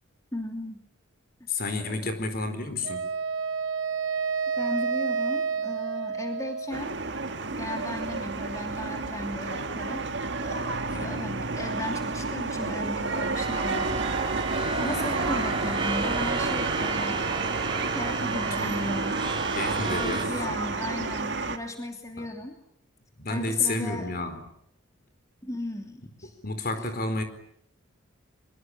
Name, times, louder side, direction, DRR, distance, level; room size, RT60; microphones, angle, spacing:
voice 1, 0.3-0.8 1.8-2.1 4.6-7.0 7.5-10.0 10.4-14.0 14.8-17.2 17.9-19.1 19.8-22.6 23.3-24.1 25.4-26.3 26.8-26.9, left 1 dB, 15° left, 4 dB, 2.9 m, -36 dB
voice 2, 1.5-3.1 10.9-11.3 14.8-15.2 18.6-18.7 19.5-20.5 22.2-22.3 23.2-24.5 26.4-27.2, left 3 dB, 50° left, 9 dB, 4.3 m, -31 dB
Wind instrument woodwind instrument, 2.8-7.0, right 5 dB, 75° right, 1.5 m, -29 dB
sound 1, 6.7-21.6, right 3 dB, 60° right, 1.9 m, -30 dB
sound 2, 13.3-20.3, right 4 dB, 25° right, 3.1 m, -32 dB
24.0 x 23.0 x 10.0 m, 0.73 s
head